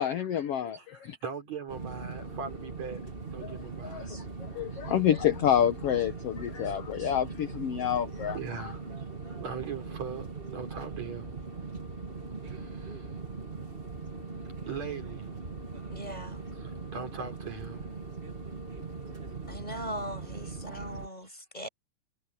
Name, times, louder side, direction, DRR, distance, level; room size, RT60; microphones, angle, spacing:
voice 1, 0.0-1.2 3.4-3.5 3.8-8.7, left 10 dB, 60° left, 1.8 m, -28 dB
voice 2, 1.2-3.0 3.3-4.1 8.3-8.9 9.3-11.5 12.4-13.1 14.7-15.3 16.6-17.9 21.2-21.3, right 6 dB, 60° right, 5.0 m, -40 dB
sound 1, 1.7-21.1, right 4 dB, 30° right, 1.0 m, -40 dB
voice 3, 15.9-16.4 19.5-21.7, equal, 10° left, 7.5 m, -39 dB
omnidirectional pair, 3.7 m